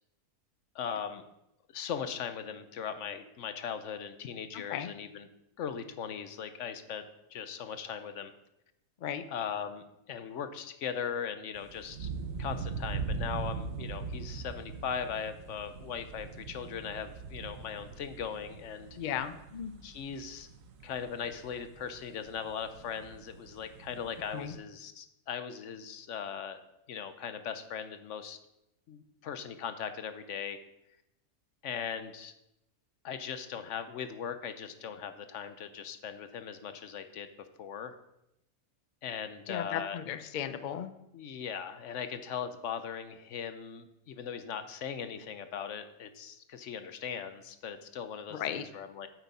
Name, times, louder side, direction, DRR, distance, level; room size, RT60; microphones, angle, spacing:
voice 1, 0.7-1.2 1.7-5.3 5.6-7.0 7.3-8.3 9.3-12.1 12.4-19.0 19.8-20.5 20.8-26.6 26.9-28.4 28.9-30.6 31.6-32.3 33.0-37.3 37.6-37.9 39.0-40.0 41.1-49.1, left 7 dB, 60° left, 10 dB, 1.0 m, -39 dB
sound 1, 11.5-24.6, right 5 dB, 65° right, 1.1 m, -41 dB
voice 2, 19.0-19.9 24.3-24.5 39.5-40.9 48.3-48.6, left 9 dB, 75° left, 11 dB, 0.4 m, -36 dB
9.0 x 8.0 x 4.1 m, 0.86 s
omnidirectional pair, 1.5 m